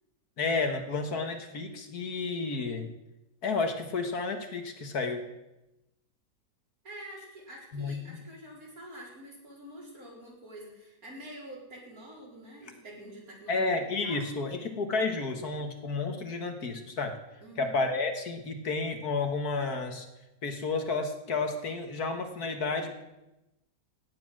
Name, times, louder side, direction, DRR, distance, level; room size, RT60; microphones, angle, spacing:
voice 1, 0.4-2.9 3.4-5.2 7.7-8.2 13.5-17.2 17.6-20.1 20.4-23.0, left 3 dB, 60° left, 6 dB, 1.9 m, -31 dB
voice 2, 6.8-14.3 17.4-17.8, right 1 dB, 55° right, -3 dB, 4.9 m, -47 dB
16.5 x 9.8 x 6.1 m, 0.96 s
omnidirectional pair, 1.9 m